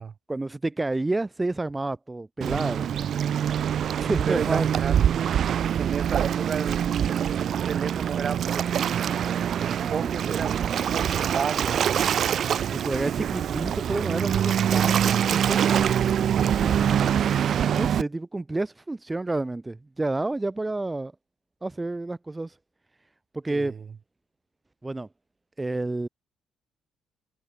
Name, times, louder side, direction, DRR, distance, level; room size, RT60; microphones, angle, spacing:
voice 1, 0.3-2.9 4.0-4.7 10.0-10.2 12.7-15.6 16.5-17.3 17.7-21.1 21.6-22.6 23.3-23.7 24.8-25.1 25.6-26.1, right 2 dB, 15° right, 0.6 m, -30 dB
Waves surf, 2.4-18.0, right 9 dB, 60° right, 0.3 m, -24 dB
voice 2, 4.3-5.0 5.7-6.9 7.4-11.8 23.5-23.8, right 6 dB, 45° right, 1.2 m, -33 dB
cardioid pair, 90°, 0 cm